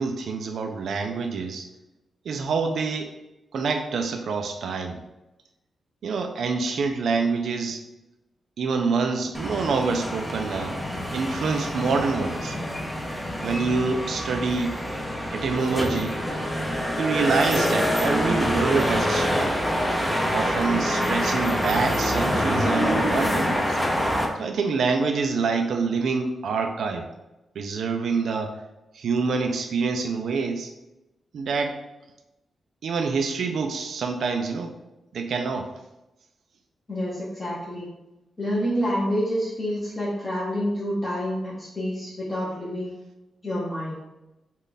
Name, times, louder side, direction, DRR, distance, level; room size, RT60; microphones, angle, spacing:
voice 1, 0.0-1.7 2.2-3.1 3.5-5.0 6.0-7.8 8.6-10.8 11.1-12.6 13.4-14.8 15.3-16.2 17.0-19.5 20.3-23.8 24.4-27.1 27.6-28.6 28.9-30.7 31.3-31.8 32.8-34.7 35.1-35.7, right 4 dB, 75° right, 5 dB, 0.5 m, -26 dB
sound 1, 9.3-24.3, equal, 5° left, 0.6 m, -26 dB
voice 2, 36.9-37.9 38.4-43.0 43.4-44.0, equal, 25° left, -8 dB, 1.0 m, -28 dB
5.4 x 2.5 x 4.0 m, 0.97 s
wide cardioid pair, 140°, 0 cm